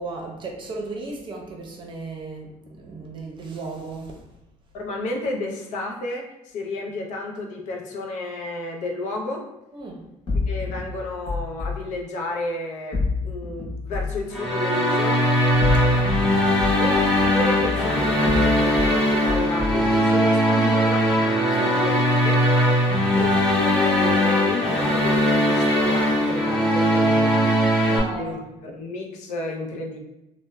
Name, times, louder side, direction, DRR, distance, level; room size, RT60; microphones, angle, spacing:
voice 1, 0.0-4.2 9.7-10.0 15.8-16.1 21.5-22.0 27.9-28.4, right 3 dB, 40° right, 0 dB, 0.6 m, -35 dB
voice 2, 4.7-9.5 10.5-15.3 16.8-21.1 21.5-22.4 23.2-30.0, left 2 dB, 70° left, 1 dB, 0.5 m, -31 dB
sound 1, 10.3-11.8 12.9-14.2 15.4-16.3 16.6-18.9 19.3-19.9, left 3 dB, 40° left, 0.8 m, -28 dB
sound 2, 14.3-28.0, equal, 5° left, 0.7 m, -20 dB
2.9 x 2.1 x 2.2 m, 0.90 s
cardioid pair, 120°, 13 cm